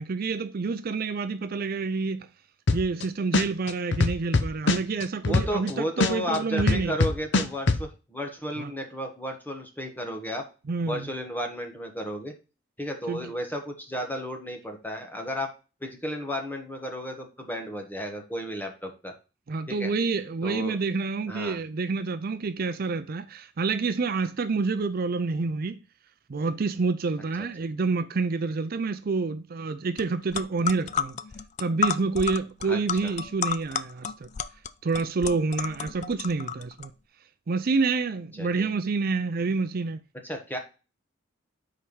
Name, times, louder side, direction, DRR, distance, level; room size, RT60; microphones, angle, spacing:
voice 1, 0.0-2.3 2.7-7.0 8.6-8.7 10.7-11.1 13.1-13.3 19.5-25.8 26.3-31.2 31.6-34.3 34.8-36.9 37.5-40.0, right 4 dB, 50° right, 0.5 m, -28 dB
sound 1, 2.7-3.0 3.3-5.7 6.0-7.8, left 3 dB, 60° left, 0.7 m, -22 dB
voice 2, 5.2-10.4 10.9-12.3 12.8-15.5 15.8-19.1 19.7-19.9 20.4-20.8 21.3-21.6 27.4-27.5 32.6-33.1 38.4-38.7 40.2-40.6, equal, 10° left, 1.3 m, -33 dB
sound 2, 30.0-30.1 30.3-36.9, left 7 dB, 35° left, 0.4 m, -31 dB
5.0 x 4.5 x 5.4 m
head